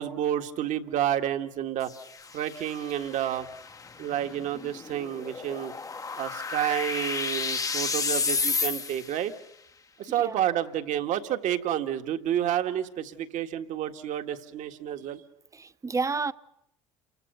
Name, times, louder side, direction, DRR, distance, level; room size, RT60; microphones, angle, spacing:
voice 1, 0.0-1.9 2.3-3.5 4.0-5.7 6.2-9.3 10.0-15.2, right 11 dB, 60° right, 1.8 m, -30 dB
sound 1, 1.8-9.2, left 4 dB, 25° left, 1.0 m, -32 dB
voice 2, 15.5-16.3, right 4 dB, 20° right, 0.9 m, -30 dB
29.0 x 23.5 x 6.8 m
hypercardioid pair, 75°, 14 cm